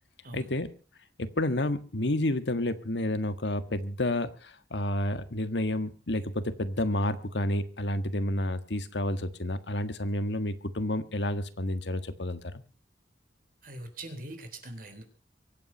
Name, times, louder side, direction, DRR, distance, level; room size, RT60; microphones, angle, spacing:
voice 1, 0.3-0.7 1.2-12.5, left 1 dB, 85° left, 11 dB, 1.6 m, -30 dB
voice 2, 13.6-15.0, right 1 dB, 55° right, 8 dB, 3.5 m, -42 dB
24.0 x 9.0 x 5.6 m, 0.37 s
head